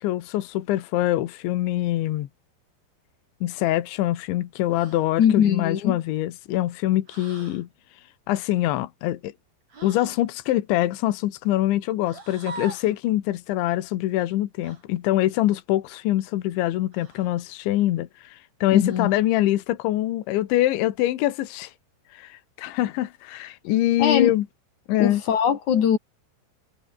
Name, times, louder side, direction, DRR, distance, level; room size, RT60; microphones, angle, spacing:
voice 1, 0.0-2.3 3.4-7.7 8.3-9.3 9.8-21.7 22.1-24.5 24.9-25.2, left 14 dB, 80° left, 3.8 m, -24 dB
sound 1, 4.7-5.1 7.1-7.6 9.7-10.2 12.0-13.0 14.6-14.8 16.9-17.4 18.8-19.3, right 4 dB, 35° right, 6.9 m, -42 dB
voice 2, 5.2-6.0 18.7-19.1 24.0-24.3 25.0-26.0, left 8 dB, 50° left, 2.7 m, -21 dB
omnidirectional pair, 5.3 m